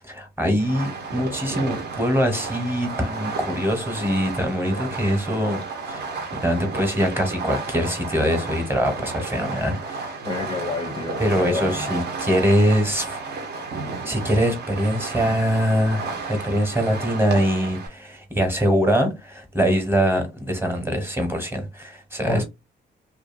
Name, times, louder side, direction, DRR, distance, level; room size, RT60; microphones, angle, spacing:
voice 1, 0.1-5.6 5.9-6.1 6.4-10.2 11.2-13.2 14.0-22.4, equal, 10° right, 1.0 m, -23 dB
Fireworks, 0.6-17.9, right 4 dB, 55° right, 0.9 m, -32 dB
voice 2, 10.2-11.9 22.3-22.4, left 3 dB, 25° left, 0.5 m, -28 dB
2.5 x 2.4 x 2.4 m
cardioid pair, 90°, 20 cm